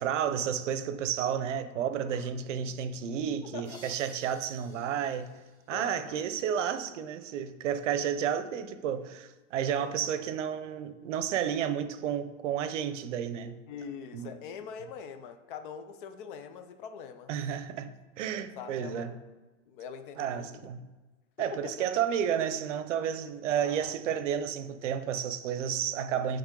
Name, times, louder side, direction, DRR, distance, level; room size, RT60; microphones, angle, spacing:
voice 1, 0.0-5.4 5.7-13.6 14.1-14.3 17.3-19.1 20.2-20.8 21.4-26.4, right 8 dB, 75° right, 0.7 m, -31 dB
sound 1, 3.6-6.4, left 1 dB, 25° left, 1.9 m, -56 dB
voice 2, 5.7-6.2 9.7-10.0 11.5-11.6 13.7-17.3 18.6-19.2 19.7-20.7 21.5-21.9 23.6-23.9, left 7 dB, 45° left, 0.6 m, -43 dB
8.8 x 3.5 x 3.8 m
supercardioid pair, 155°, 37 cm